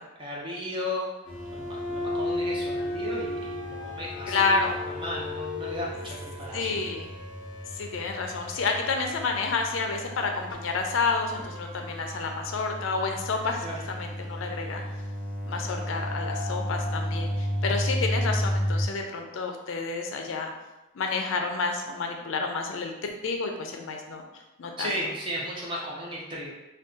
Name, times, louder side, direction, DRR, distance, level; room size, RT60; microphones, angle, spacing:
voice 1, 0.2-1.0 1.5-4.4 4.9-6.9 13.6-13.8 24.8-26.5, equal, 25° right, -4 dB, 0.6 m, -35 dB
sound 1, 1.3-18.8, left 1 dB, 35° left, 0.9 m, -33 dB
voice 2, 4.3-4.8 6.5-7.1 7.7-14.8 15.5-20.5 20.9-24.2 24.6-24.9, left 4 dB, 70° left, 3 dB, 0.4 m, -29 dB
2.6 x 2.3 x 3.6 m, 1.0 s
head